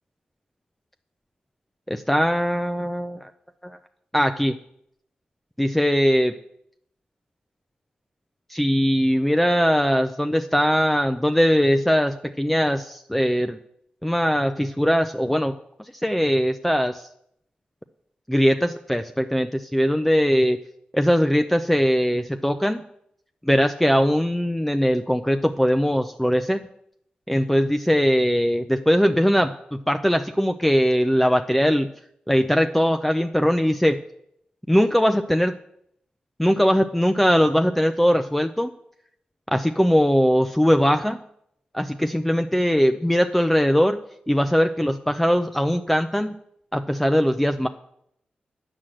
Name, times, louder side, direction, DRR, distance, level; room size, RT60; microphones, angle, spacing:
voice 1, 1.9-3.3 3.6-3.8 4.1-4.6 5.6-6.4 8.5-13.6 14.0-15.5 16.0-17.1 18.3-20.6 20.9-22.8 23.5-26.7 27.3-31.9 32.3-34.0 34.7-35.6 36.4-38.7 39.5-41.2 41.7-46.3 46.7-47.7, equal, 5° left, 7 dB, 0.6 m, -20 dB
8.4 x 6.2 x 7.6 m, 0.73 s
cardioid pair, 45°, 3 cm